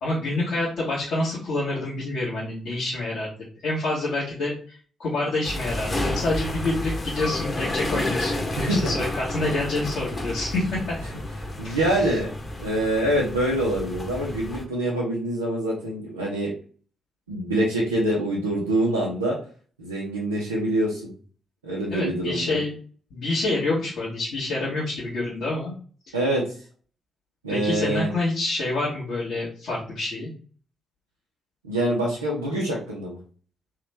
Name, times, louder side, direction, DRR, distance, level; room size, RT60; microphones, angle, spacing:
voice 1, 0.0-3.3 3.6-11.0 11.6-11.8 21.9-22.7 23.1-25.7 27.5-30.3, left 2 dB, 65° left, -8 dB, 1.6 m, -27 dB
sound 1, 5.4-14.6, left 1 dB, 35° left, 1.2 m, -31 dB
voice 2, 8.6-9.0 11.6-12.3 12.6-16.5 17.3-19.4 19.8-21.1 21.6-22.6 26.1-26.4 27.4-28.1 31.6-33.2, right 1 dB, 90° right, -5 dB, 0.8 m, -25 dB
3.7 x 3.1 x 3.4 m, 0.42 s
hypercardioid pair, 40°, 0 cm